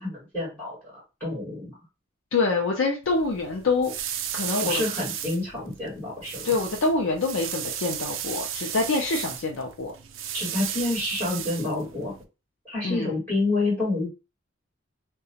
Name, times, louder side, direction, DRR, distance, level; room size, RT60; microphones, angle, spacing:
voice 1, 0.0-1.7 4.6-6.5 10.3-12.1 12.6-14.1, left 2 dB, 10° left, -9 dB, 1.7 m, -28 dB
voice 2, 2.3-3.9 4.3-5.0 6.4-9.9 12.8-13.1, left 3 dB, 80° left, 0 dB, 0.5 m, -26 dB
sound 1, 3.0-12.2, right 9 dB, 85° right, 0.4 m, -35 dB
2.8 x 2.2 x 2.7 m, 0.29 s
head